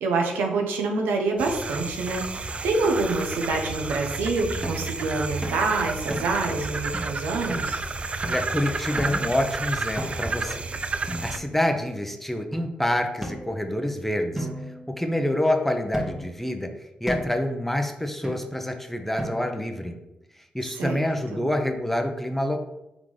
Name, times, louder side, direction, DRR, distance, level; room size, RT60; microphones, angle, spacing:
voice 1, 0.0-7.8 20.6-21.4, right 3 dB, 85° right, 2 dB, 0.6 m, -27 dB
sound 1, 1.4-11.4, right 3 dB, 35° right, 0.4 m, -31 dB
sound 2, 4.6-4.9 5.4-5.7 6.1-6.5 6.9-7.0 7.5-7.7 8.2-8.5 9.0-9.3 10.0-10.4 11.1-11.8 12.5-12.6 13.2-13.9 14.4-15.4 15.9-16.4 17.1-17.4 18.2-18.7 19.2-19.7, equal, 15° right, 1.1 m, -35 dB
voice 2, 8.3-10.6 11.2-14.5 14.9-16.7 17.0-20.0 20.5-22.6, left 1 dB, 5° left, 5 dB, 0.6 m, -27 dB
3.7 x 3.5 x 3.2 m, 0.89 s
supercardioid pair, 50°, 3 cm